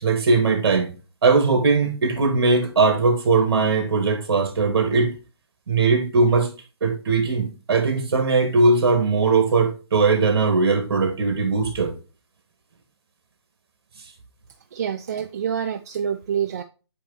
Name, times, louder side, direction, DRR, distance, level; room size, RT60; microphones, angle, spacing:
voice 1, 0.0-0.9 1.2-5.1 5.7-6.5 6.8-11.9, right 4 dB, 60° right, 2.2 m, -19 dB
voice 2, 14.7-16.6, right 8 dB, 35° right, 0.4 m, -27 dB
8.5 x 3.4 x 4.2 m
hypercardioid pair, 170°, 14 cm